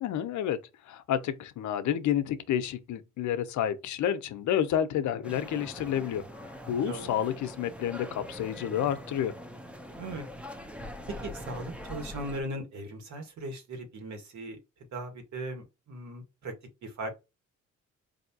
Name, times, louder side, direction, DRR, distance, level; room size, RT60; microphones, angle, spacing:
voice 1, 0.0-0.6 0.9-9.3, left 10 dB, 75° left, 0.7 m, -30 dB
sound 1, 5.2-12.4, equal, 5° right, 0.7 m, -43 dB
voice 2, 11.2-14.6 14.9-16.5 16.8-17.2, right 1 dB, 70° right, 1.7 m, -38 dB
4.2 x 2.7 x 2.8 m
cardioid pair, 90°, 30 cm